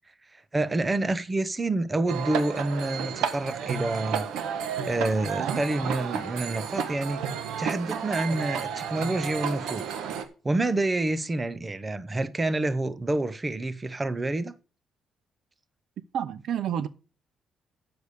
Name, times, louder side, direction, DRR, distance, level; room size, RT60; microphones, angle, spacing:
voice 1, 0.3-4.3 4.8-7.2 7.6-9.8 10.4-14.5, right 2 dB, 25° right, 0.9 m, -28 dB
sound 1, 2.1-10.2, right 7 dB, 90° right, 1.2 m, -32 dB
voice 2, 16.1-16.9, right 9 dB, 70° right, 0.6 m, -29 dB
8.2 x 6.9 x 6.6 m
cardioid pair, 90°, 0 cm